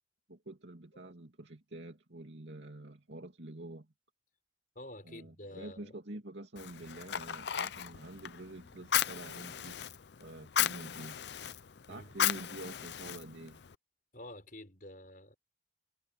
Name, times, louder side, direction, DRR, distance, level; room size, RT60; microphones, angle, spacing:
voice 1, 0.3-3.9 5.0-9.8 10.2-11.2 11.9-13.6, right 1 dB, 75° right, 2.6 m, -47 dB
voice 2, 4.7-6.0 11.9-12.1 14.1-15.4, left 1 dB, 45° left, 6.1 m, -49 dB
Fire, 6.6-13.7, left 10 dB, 70° left, 0.6 m, -36 dB
head